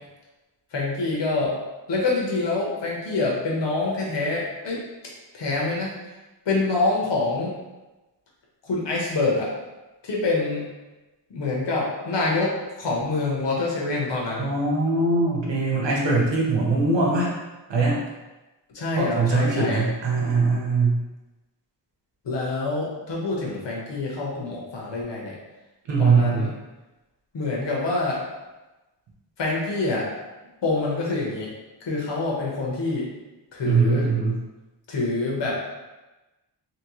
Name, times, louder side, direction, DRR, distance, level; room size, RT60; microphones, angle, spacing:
voice 1, 0.7-1.5 1.9-4.8 5.3-5.9 6.4-7.5 8.6-9.5 10.0-10.6 11.3-14.5 18.7-19.8 22.2-25.4 26.0-26.5 27.3-28.2 29.4-30.1 30.6-31.5 31.8-33.1 33.5-34.1 34.9-35.5, left 3 dB, 70° left, -4 dB, 1.1 m, -26 dB
voice 2, 14.4-17.3 17.7-18.0 19.0-21.0 25.9-26.5 33.6-34.4, right 3 dB, 70° right, -3 dB, 1.1 m, -21 dB
3.1 x 2.9 x 3.0 m, 1.1 s
cardioid pair, 80°, 45 cm